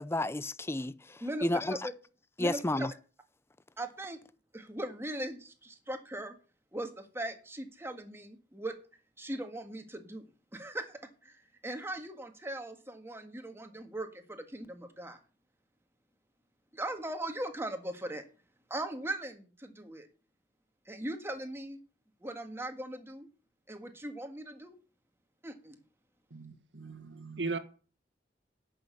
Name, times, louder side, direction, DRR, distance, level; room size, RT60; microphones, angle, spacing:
voice 1, 0.0-1.9 2.4-2.9, left 1 dB, 15° left, 0.6 m, -32 dB
voice 2, 1.2-1.9 2.4-2.9 3.8-4.2 4.5-6.4 6.7-8.8 9.2-10.2 10.5-15.2 16.7-18.2 18.7-20.1 20.9-21.8 22.2-23.3 23.7-24.8 25.4-25.8, right 1 dB, 15° right, 1.7 m, -39 dB
voice 3, 26.3-27.6, right 3 dB, 85° right, 1.6 m, -38 dB
11.0 x 6.5 x 8.2 m
head